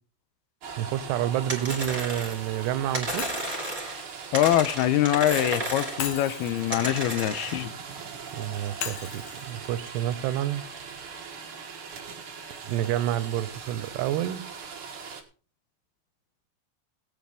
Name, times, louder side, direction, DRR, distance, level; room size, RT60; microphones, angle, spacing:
sound 1, 0.6-15.2, right 6 dB, 50° right, 1.7 m, -41 dB
voice 1, 0.8-3.4 8.3-10.6 12.6-14.5, right 12 dB, 90° right, 2.9 m, -29 dB
sound 2, 1.5-2.5 2.9-4.0 4.3-6.1 6.7-7.6, right 1 dB, 10° right, 3.6 m, -33 dB
Shatter, 3.2-5.2 6.0-8.1 8.8-10.9, left 8 dB, 60° left, 2.0 m, -40 dB
voice 2, 4.3-7.7, left 13 dB, 80° left, 2.6 m, -24 dB
18.5 x 9.2 x 3.6 m
omnidirectional pair, 4.8 m